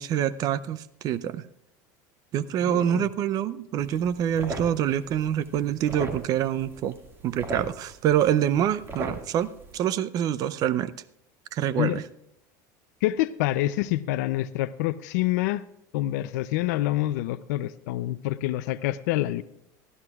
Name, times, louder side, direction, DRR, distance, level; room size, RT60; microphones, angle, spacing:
voice 1, 0.0-1.4 2.3-7.0 7.2-10.9 11.5-12.0, right 10 dB, 40° right, 17 dB, 0.5 m, -26 dB
voice 2, 2.6-3.1 11.8-12.0 13.0-15.6 15.9-19.4, left 15 dB, 80° left, 13 dB, 0.5 m, -27 dB
sound 1, 3.8-9.8, right 2 dB, 25° right, 1.9 m, -39 dB
19.5 x 14.0 x 2.4 m, 0.80 s
supercardioid pair, 135°, 9 cm